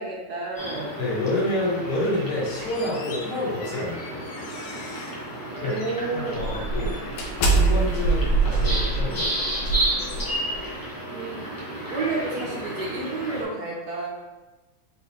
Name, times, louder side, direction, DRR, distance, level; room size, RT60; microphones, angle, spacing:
voice 1, 0.0-0.9 5.5-6.6 11.1-14.1, right 3 dB, 60° right, -3 dB, 1.3 m, -31 dB
sound 1, 0.6-13.4, right 1 dB, 30° left, 0.4 m, -32 dB
voice 2, 1.0-4.3 5.6-5.7 6.1-7.0 7.5-9.3, left 2 dB, 60° left, -5 dB, 1.8 m, -28 dB
sound 2, 2.5-5.2 5.7-5.9 6.4-10.6, right 3 dB, 90° left, 1.5 m, -26 dB
4.3 x 3.9 x 3.1 m, 1.1 s
omnidirectional pair, 2.1 m